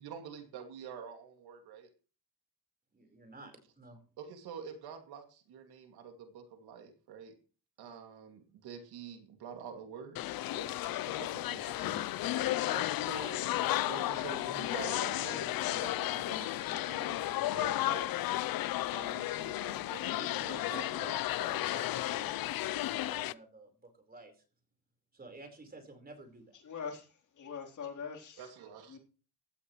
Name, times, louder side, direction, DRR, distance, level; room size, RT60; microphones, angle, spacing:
voice 1, 0.0-1.9 4.2-7.3 7.8-10.2 10.5-12.1 13.8-18.3 18.9-21.1 28.4-29.0, right 7 dB, 85° right, 5 dB, 2.5 m, -47 dB
voice 2, 2.9-4.0 12.7-13.8 20.0-24.4 25.1-26.6, right 2 dB, 25° right, 5 dB, 4.6 m, -50 dB
sound 1, 10.2-23.3, left 15 dB, 70° left, 0.6 m, -33 dB
voice 3, 26.6-28.5 28.9-29.0, left 6 dB, 55° left, 1 dB, 3.8 m, -43 dB
16.0 x 12.5 x 3.2 m, 0.37 s
cardioid pair, 120°, 37 cm